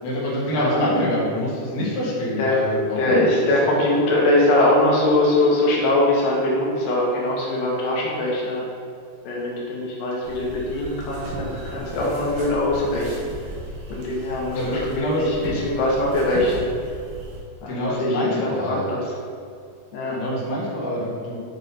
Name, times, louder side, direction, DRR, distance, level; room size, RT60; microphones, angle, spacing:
voice 1, 0.0-3.2 3.7-3.8 14.5-15.2 17.7-18.9 20.1-21.4, left 1 dB, 65° left, -7 dB, 2.8 m, -25 dB
voice 2, 3.0-8.7 9.2-13.3 13.9-16.7 17.6-19.2 19.9-20.2, left 1 dB, 90° left, -4 dB, 3.0 m, -22 dB
sound 1, 10.2-17.4, right 1 dB, 85° right, 3.3 m, -35 dB
8.0 x 3.3 x 4.0 m, 2.3 s
omnidirectional pair, 4.5 m